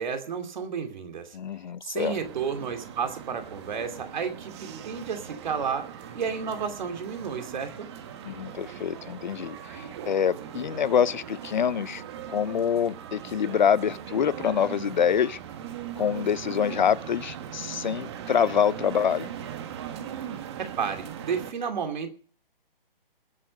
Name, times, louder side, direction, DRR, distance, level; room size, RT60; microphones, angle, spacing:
voice 1, 0.0-1.4 1.9-5.8 6.1-7.9 20.8-22.1, right 6 dB, 50° right, 2.7 m, -32 dB
voice 2, 1.3-2.2 8.2-12.0 12.3-15.4 16.0-19.3, left 8 dB, 55° left, 0.6 m, -26 dB
sound 1, 2.0-21.5, right 9 dB, 30° right, 1.4 m, -40 dB
20.0 x 8.7 x 5.3 m
hypercardioid pair, 150°, 29 cm